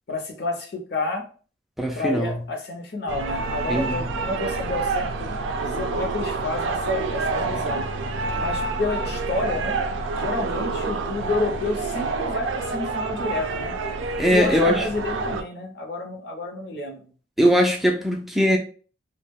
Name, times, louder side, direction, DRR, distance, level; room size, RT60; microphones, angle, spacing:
voice 1, 0.1-1.2 1.9-7.9 8.4-9.8 10.1-13.8 14.3-17.1, left 2 dB, 55° left, 0.6 m, -30 dB
voice 2, 1.8-2.4 3.7-4.0 14.2-14.9 17.4-18.6, equal, ahead, 0.3 m, -20 dB
sound 1, 3.1-15.4, right 3 dB, 85° right, 0.4 m, -28 dB
2.3 x 2.1 x 3.4 m
head